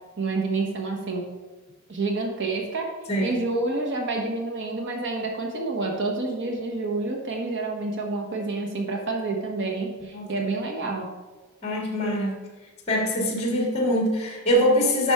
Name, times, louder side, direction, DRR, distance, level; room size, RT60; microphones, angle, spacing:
voice 1, 0.2-1.2 1.9-2.9 3.2-11.1, right 3 dB, 55° right, 1 dB, 1.2 m, -28 dB
voice 2, 3.1-3.4 10.1-10.3 11.6-12.4 12.9-15.1, equal, 30° left, -1 dB, 1.9 m, -23 dB
10.0 x 6.1 x 3.5 m, 1.2 s
head